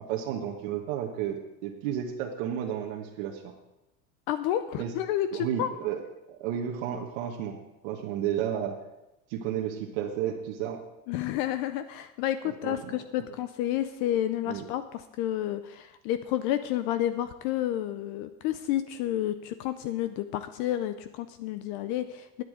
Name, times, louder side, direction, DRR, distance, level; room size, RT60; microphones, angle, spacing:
voice 1, 0.0-3.5 4.8-4.9 5.3-6.0 6.3-7.6 7.8-8.8 9.3-10.8 12.6-13.0 14.5-14.7, right 9 dB, 50° right, 1 dB, 1.4 m, -32 dB
voice 2, 4.3-5.7 11.1-14.8 15.2-22.4, left 12 dB, 40° left, 12 dB, 0.5 m, -30 dB
9.6 x 8.5 x 7.8 m, 0.94 s
supercardioid pair, 165°, 40 cm